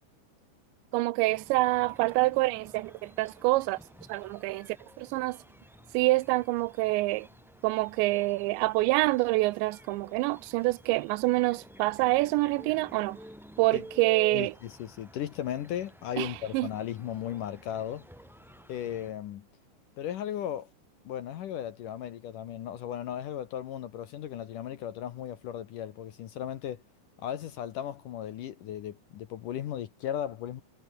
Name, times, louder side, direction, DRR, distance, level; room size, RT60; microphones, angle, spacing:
voice 1, 0.9-3.8 4.1-4.7 5.0-5.4 5.9-7.3 7.6-13.2 13.6-14.5 16.2-16.7, right 21 dB, 85° right, 2.9 m, -26 dB
sound 1, 1.3-19.1, equal, ahead, 3.0 m, -51 dB
voice 2, 14.3-18.1 18.7-19.5 20.0-20.7 21.1-26.8 27.2-30.6, left 10 dB, 70° left, 2.1 m, -36 dB
omnidirectional pair, 5.2 m